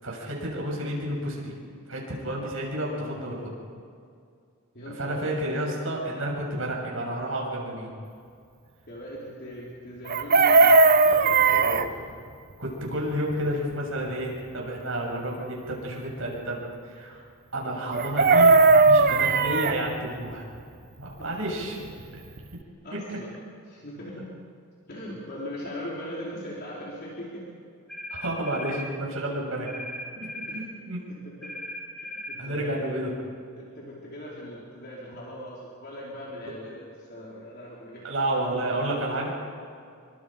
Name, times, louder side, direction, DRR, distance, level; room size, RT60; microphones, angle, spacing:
voice 1, 0.0-1.6 1.9-3.5 4.9-7.9 11.7-11.8 12.6-17.2 17.5-20.4 21.0-21.8 23.1-23.2 28.1-29.7 30.2-30.5 30.9-31.0 32.4-33.1 38.0-39.3, right 1 dB, 65° right, -2 dB, 7.1 m, -30 dB
voice 2, 4.7-5.4 8.9-12.0 17.7-17.9 18.2-18.3 21.2-21.3 21.6-21.7 22.8-23.4 23.6-24.3 24.9-27.5 30.5-30.7 31.1-31.5 32.1-33.0 33.6-38.1, equal, 45° left, -5 dB, 4.4 m, -40 dB
Chicken rooster, 10.1-11.9 17.9-19.8 22.0-22.1 22.4-22.6, right 3 dB, 45° right, 0.8 m, -17 dB
sound 1, 27.9-28.9 29.7-30.6 31.4-32.4, equal, ahead, 5.6 m, -37 dB
27.5 x 23.5 x 5.2 m, 2.3 s
head